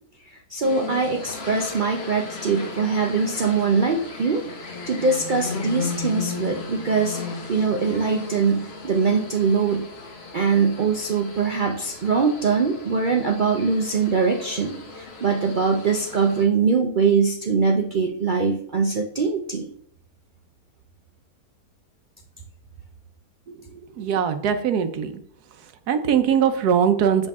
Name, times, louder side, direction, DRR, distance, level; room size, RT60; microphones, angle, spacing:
voice 1, 0.3-7.2 7.5-9.9 10.3-19.7, right 5 dB, 60° right, 2 dB, 0.5 m, -22 dB
sound 1, 0.6-16.4, left 4 dB, 45° left, 1.2 m, -36 dB
voice 2, 23.7-25.1 25.9-27.3, right 8 dB, 80° right, 8 dB, 1.3 m, -21 dB
7.2 x 5.2 x 3.5 m, 0.62 s
omnidirectional pair, 1.7 m